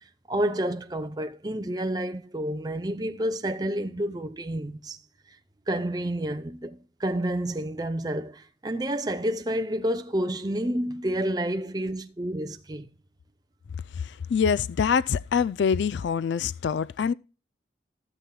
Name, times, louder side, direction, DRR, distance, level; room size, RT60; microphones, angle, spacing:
voice 1, 0.3-5.0 5.7-12.9, right 1 dB, 20° right, 0.6 m, -29 dB
voice 2, 14.0-17.1, left 6 dB, 65° left, 0.3 m, -25 dB
15.5 x 7.4 x 2.3 m
head